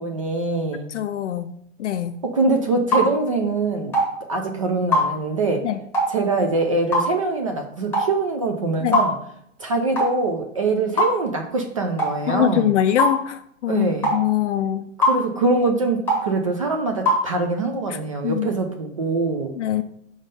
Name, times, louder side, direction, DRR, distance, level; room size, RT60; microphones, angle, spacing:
voice 1, 0.0-0.9 2.2-4.0 4.3-5.7 6.1-9.1 9.6-12.7 13.7-14.1 15.0-19.5, right 3 dB, 30° right, 3 dB, 0.4 m, -23 dB
voice 2, 0.9-1.5 1.8-2.2 5.6-5.8 8.8-9.0 12.3-14.9 17.9-18.5 19.6-19.8, left 11 dB, 65° left, 9 dB, 0.5 m, -23 dB
sound 1, 2.9-3.1 3.9-4.1 4.9-5.1 5.9-6.1 6.9-7.1 7.9-8.1 8.9-9.1 10.0-10.1 11.0-11.2 12.0-12.1 13.0-13.2 14.0-14.2 15.0-15.2 16.1-16.3 17.1-17.2, equal, 5° left, 1.0 m, -20 dB
5.2 x 3.6 x 5.5 m, 0.73 s
hypercardioid pair, 155°, 38 cm